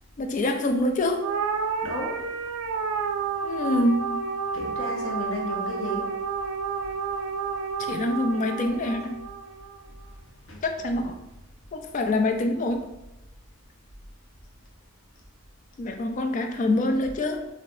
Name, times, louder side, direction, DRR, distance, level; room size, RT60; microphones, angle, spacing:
voice 1, 0.2-1.2 3.4-4.2 7.8-9.2 10.6-11.2 11.7-12.9 15.8-17.5, left 1 dB, 40° left, 5 dB, 0.3 m, -25 dB
sound 1, 1.2-9.8, right 5 dB, 85° right, 0.3 m, -30 dB
voice 2, 1.8-2.2 4.5-6.1 10.5-10.6, equal, 85° left, -1 dB, 0.8 m, -33 dB
3.2 x 2.6 x 2.5 m, 0.96 s
head